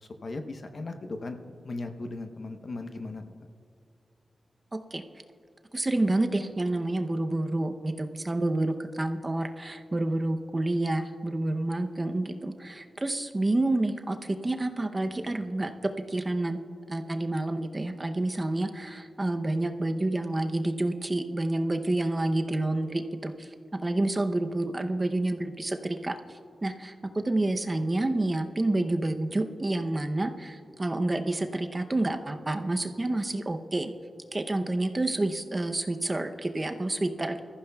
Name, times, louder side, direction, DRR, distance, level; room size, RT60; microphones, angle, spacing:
voice 1, 0.0-1.4 1.6-3.2, left 2 dB, 55° left, 6 dB, 0.9 m, -37 dB
voice 2, 5.7-16.6 16.9-23.5 23.8-33.9 34.3-37.4, right 2 dB, 25° right, 6 dB, 0.7 m, -29 dB
21.5 x 14.0 x 2.3 m, 2.5 s
wide cardioid pair, 100°, 0 cm